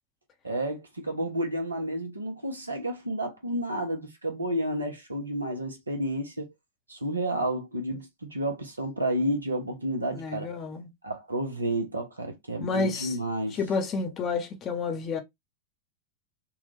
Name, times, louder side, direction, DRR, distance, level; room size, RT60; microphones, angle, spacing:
voice 1, 0.4-6.5 6.9-10.5 11.0-13.6, right 1 dB, 80° right, 1.0 m, -31 dB
voice 2, 10.1-10.9 12.6-13.2 13.5-15.2, left 4 dB, 30° left, 0.8 m, -30 dB
3.7 x 2.4 x 3.1 m
figure-of-eight pair, 90°, 0 cm